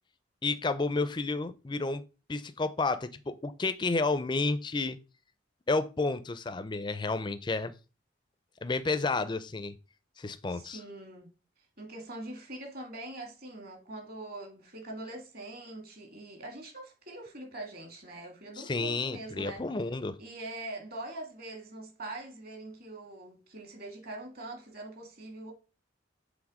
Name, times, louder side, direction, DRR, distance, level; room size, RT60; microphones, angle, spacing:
voice 1, 0.4-2.0 2.3-5.0 5.7-7.7 8.6-9.7 10.2-10.8 18.6-20.2, left 3 dB, 25° left, 0.4 m, -31 dB
voice 2, 10.5-11.3 11.8-19.6 20.2-25.5, right 2 dB, 50° right, 1.9 m, -43 dB
7.2 x 3.4 x 4.8 m
head